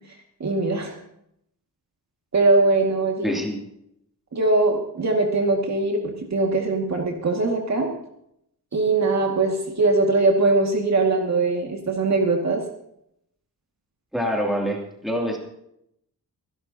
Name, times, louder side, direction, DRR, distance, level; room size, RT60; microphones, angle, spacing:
voice 1, 0.4-0.9 2.3-3.4 4.3-7.9 8.7-12.6, right 3 dB, 45° right, 1 dB, 2.2 m, -21 dB
voice 2, 3.2-3.6 14.1-15.4, equal, ahead, -1 dB, 2.8 m, -25 dB
26.0 x 11.5 x 2.9 m, 0.75 s
wide cardioid pair, 135°, 38 cm